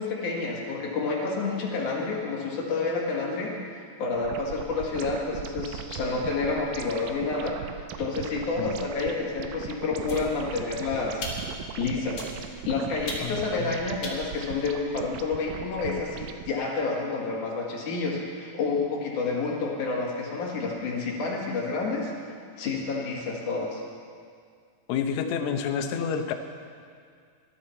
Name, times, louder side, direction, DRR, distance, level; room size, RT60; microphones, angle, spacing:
voice 1, 0.0-3.6 4.0-7.6 8.0-11.3 11.8-22.1 22.6-23.8, left 4 dB, 55° left, -2 dB, 3.2 m, -29 dB
sound 1, 4.2-16.5, right 9 dB, 90° right, 1.8 m, -39 dB
sound 2, 10.1-10.7 11.2-11.7 12.2-12.6 13.1-13.5 14.0-15.2, left 2 dB, 40° left, 2.1 m, -38 dB
voice 2, 13.2-13.8 24.9-26.3, left 7 dB, 90° left, 6 dB, 1.6 m, -29 dB
19.5 x 12.5 x 4.4 m, 2.2 s
omnidirectional pair, 4.5 m